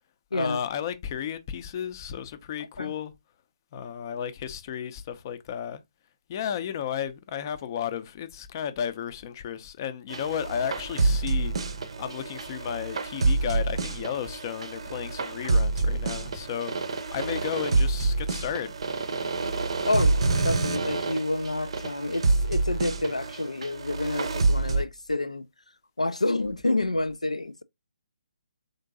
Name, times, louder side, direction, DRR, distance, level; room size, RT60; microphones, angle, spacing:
voice 1, 0.3-3.1 3.7-5.8 6.3-11.5 12.0-16.7 17.1-18.7, left 9 dB, 35° left, 0.5 m, -33 dB
sound 1, 10.1-24.8, right 3 dB, 55° right, 0.6 m, -27 dB
voice 2, 19.8-25.5 26.0-27.6, left 2 dB, 85° left, 0.3 m, -28 dB
3.7 x 2.6 x 3.8 m
figure-of-eight pair, 140°, 3 cm